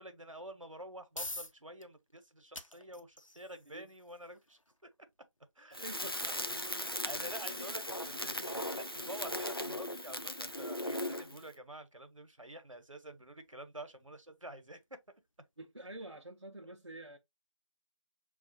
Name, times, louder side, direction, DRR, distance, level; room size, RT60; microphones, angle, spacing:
voice 1, 0.0-4.6 5.5-5.9 6.3-14.8 16.6-16.7, right 1 dB, 80° right, 1.0 m, -49 dB
sound 1, 0.7-15.5, left 1 dB, 85° left, 0.8 m, -53 dB
Crackle, 5.7-11.4, left 1 dB, 45° left, 0.4 m, -38 dB
voice 2, 5.7-7.1 15.6-17.2, right 1 dB, 55° right, 0.6 m, -48 dB
6.3 x 2.4 x 2.7 m
figure-of-eight pair, 175°, 16 cm